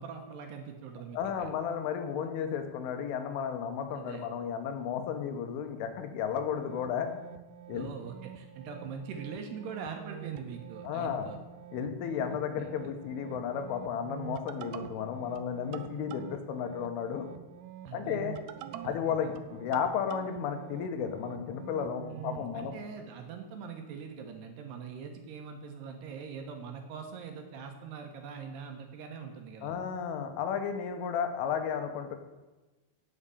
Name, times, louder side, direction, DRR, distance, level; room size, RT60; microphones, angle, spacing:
voice 1, 0.0-1.5 3.9-4.3 7.7-11.4 12.6-12.7 17.9-18.2 18.8-18.9 19.2-19.3 22.1-29.8, right 6 dB, 70° right, 4 dB, 2.9 m, -42 dB
voice 2, 1.1-7.2 7.7-7.9 10.8-11.3 11.7-17.3 17.9-18.4 18.8-22.7 29.6-32.2, left 7 dB, 85° left, 7 dB, 3.6 m, -33 dB
sound 1, 6.4-22.5, right 10 dB, 90° right, 2.3 m, -46 dB
8.8 x 8.0 x 8.4 m, 1.1 s
omnidirectional pair, 5.5 m